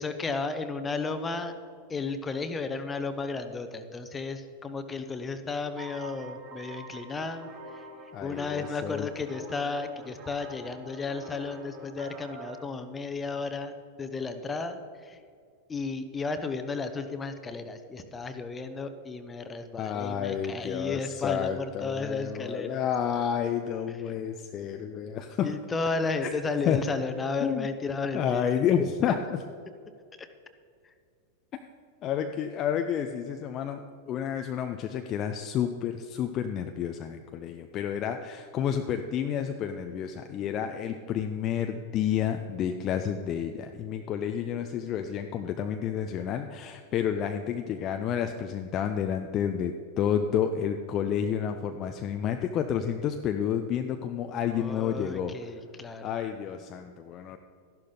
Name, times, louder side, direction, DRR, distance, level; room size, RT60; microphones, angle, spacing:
voice 1, 0.0-1.5 1.9-7.9 8.2-13.7 14.0-15.2 15.7-22.9 25.4-28.6 30.2-30.3 30.8-30.9 54.5-56.2, left 4 dB, 15° left, 9 dB, 0.9 m, -33 dB
sound 1, 5.8-12.7, right 3 dB, 35° right, 2.3 m, -46 dB
voice 2, 8.1-9.1 19.8-25.5 26.7-26.8 27.4-27.7 28.1-29.4 32.0-55.3 56.0-57.4, left 8 dB, 35° left, 6 dB, 0.5 m, -30 dB
13.0 x 11.5 x 3.9 m, 2.2 s
figure-of-eight pair, 90°, 0 cm